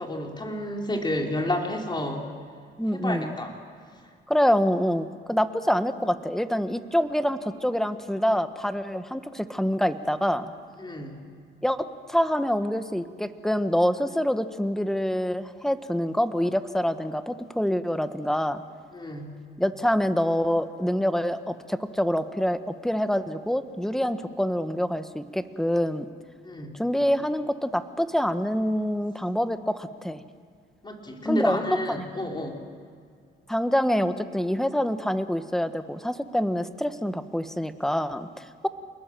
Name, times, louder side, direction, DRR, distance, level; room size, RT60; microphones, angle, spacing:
voice 1, 0.0-2.2 2.9-3.5 10.8-11.2 18.9-19.4 26.4-26.7 30.8-32.6, left 1 dB, 20° left, 1 dB, 4.2 m, -30 dB
voice 2, 2.8-3.3 4.3-10.5 11.6-18.6 19.6-26.1 26.8-30.2 31.3-31.6 31.9-32.1 33.5-38.7, equal, ahead, 10 dB, 1.3 m, -26 dB
28.0 x 20.5 x 7.7 m, 2.2 s
cardioid pair, 90°, 20 cm